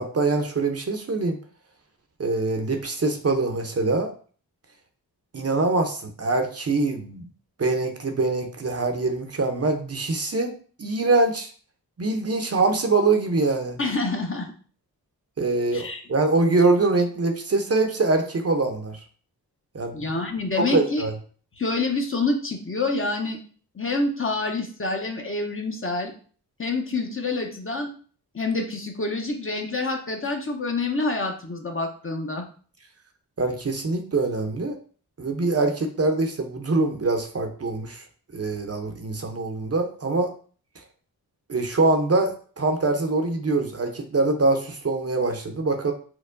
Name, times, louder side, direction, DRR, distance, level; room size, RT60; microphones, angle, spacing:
voice 1, 0.0-1.4 2.2-4.1 5.3-7.2 7.6-10.5 10.8-11.5 12.0-13.8 15.4-19.0 19.7-20.1 20.7-21.1 33.4-34.8 35.2-38.0 38.3-40.3 41.5-45.9, right 3 dB, 40° right, 4 dB, 0.6 m, -24 dB
voice 2, 13.8-14.5 15.7-16.0 19.9-21.1 21.6-23.4 23.7-26.1 26.6-27.9 28.3-32.5, left 3 dB, 35° left, 3 dB, 0.7 m, -27 dB
4.5 x 2.1 x 2.5 m, 0.42 s
cardioid pair, 45°, 40 cm